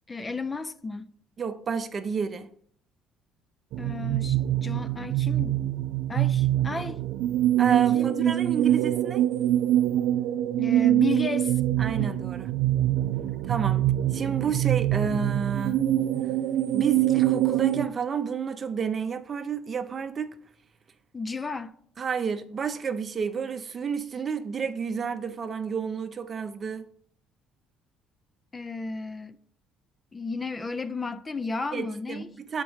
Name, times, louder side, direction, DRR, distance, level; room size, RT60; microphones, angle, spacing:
voice 1, 0.1-1.1 3.8-5.6 6.1-7.0 7.9-8.4 10.6-11.6 12.0-12.1 13.5-13.7 21.1-21.8 28.5-29.4 30.1-32.3, left 4 dB, 20° left, 0.4 m, -33 dB
voice 2, 1.4-2.5 7.6-9.3 11.8-12.5 13.5-13.8 14.1-15.8 16.7-20.4 22.0-26.8 31.7-32.6, right 6 dB, 35° right, 0.6 m, -30 dB
sound 1, 3.7-17.9, right 13 dB, 80° right, 0.3 m, -24 dB
7.0 x 4.4 x 4.6 m
cardioid pair, 105°, 0 cm